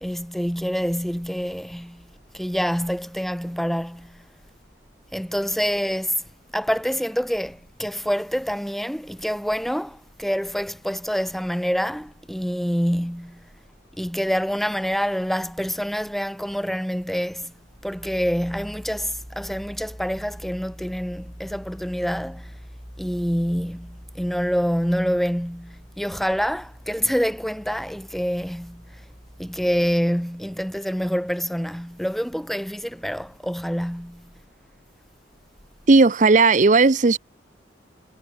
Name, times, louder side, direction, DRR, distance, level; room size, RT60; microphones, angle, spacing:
voice 1, 0.0-2.0 2.3-4.2 5.1-6.2 6.5-13.5 14.0-17.5 17.8-22.5 23.0-28.8 29.4-34.3, equal, ahead, 2.2 m, -26 dB
voice 2, 35.9-37.2, right 3 dB, 40° right, 0.6 m, -15 dB
head